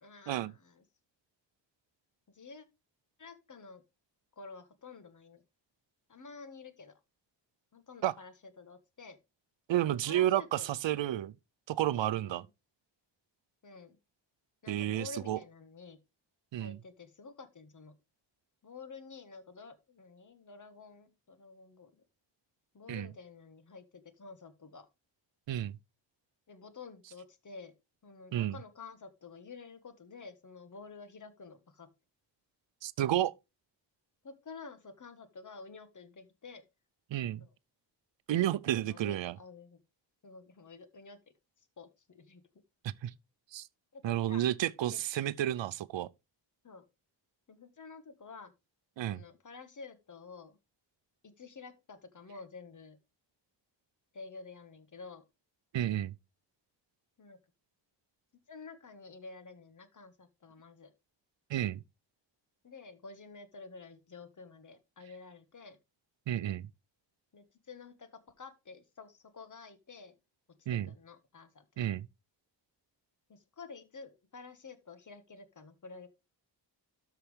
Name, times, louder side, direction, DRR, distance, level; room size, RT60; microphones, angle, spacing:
voice 1, 0.0-0.8 2.3-2.7 3.2-3.8 4.4-5.4 6.1-6.9 7.7-9.2 9.8-10.7 12.2-12.5 13.6-14.0 14.6-16.0 16.6-17.9 18.6-22.0 22.7-24.9 26.5-27.7 28.0-31.9 34.2-36.6 37.4-37.5 38.6-39.8 40.2-41.2 41.6-42.4 43.9-44.4 44.9-45.0 46.6-46.8 47.5-48.5 49.1-50.6 51.2-53.0 54.1-55.2 57.2-57.4 58.5-60.9 62.6-65.8 67.3-70.2 70.8-71.9 73.3-76.1, left 4 dB, 45° left, 1.5 m, -50 dB
voice 2, 9.7-11.3 11.7-12.4 14.7-15.4 16.5-16.8 22.9-23.1 25.5-25.8 28.3-28.6 32.8-33.3 37.1-37.5 38.3-39.3 42.8-43.1 43.5-43.7 44.0-46.1 49.0-49.2 55.7-56.1 61.5-61.8 66.3-66.7 70.7-70.9 71.8-72.1, right 12 dB, 85° right, 0.6 m, -31 dB
13.0 x 5.8 x 3.3 m
wide cardioid pair, 150°, 44 cm